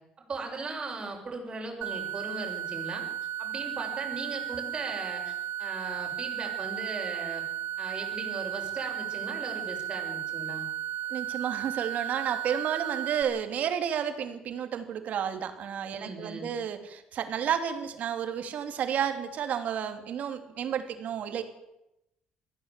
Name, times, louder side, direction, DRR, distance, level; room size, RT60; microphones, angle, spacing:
voice 1, 0.3-3.0 3.4-7.4 7.8-10.7 15.9-16.5, right 3 dB, 30° right, 1 dB, 6.7 m, -38 dB
sound 1, 1.8-13.2, right 11 dB, 80° right, 3.5 m, -35 dB
voice 2, 11.1-21.4, right 8 dB, 60° right, 7 dB, 2.8 m, -31 dB
21.5 x 15.0 x 8.2 m, 0.88 s
cardioid pair, 115°, 3 cm